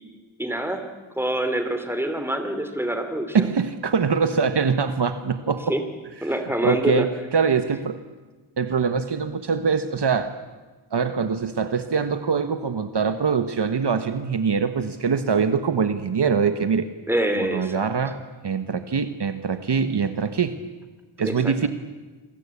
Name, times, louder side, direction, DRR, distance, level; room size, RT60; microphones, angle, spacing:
voice 1, 0.4-0.8 1.2-3.5 5.7-5.8 6.2-7.1 17.1-17.8 21.2-21.7, right 1 dB, 5° right, 7 dB, 2.9 m, -26 dB
voice 2, 3.3-5.8 6.2-6.3 6.6-8.0 8.6-10.4 10.9-16.9 17.4-20.6 21.2-21.7, right 5 dB, 55° right, 9 dB, 1.4 m, -23 dB
29.0 x 22.0 x 8.6 m, 1.3 s
wide cardioid pair, 160°, 48 cm